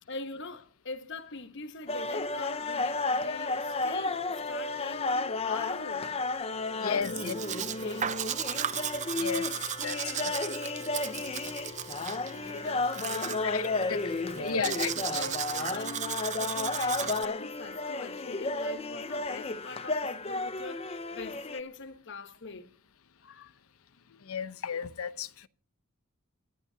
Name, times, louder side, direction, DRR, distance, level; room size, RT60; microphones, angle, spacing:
voice 1, 0.1-6.2 6.8-8.2 11.2-11.6 12.0-13.8 14.3-22.7 23.2-23.6, left 3 dB, 55° left, 1.1 m, -43 dB
sound 1, 1.9-21.6, left 3 dB, 30° left, 0.7 m, -33 dB
voice 2, 6.8-7.3 9.1-10.5 11.6-11.9 13.2-15.3 24.1-25.5, left 6 dB, 80° left, 0.8 m, -35 dB
Domestic sounds home sounds, 7.0-17.3, right 9 dB, 35° right, 0.5 m, -36 dB
27.0 x 11.0 x 2.7 m
head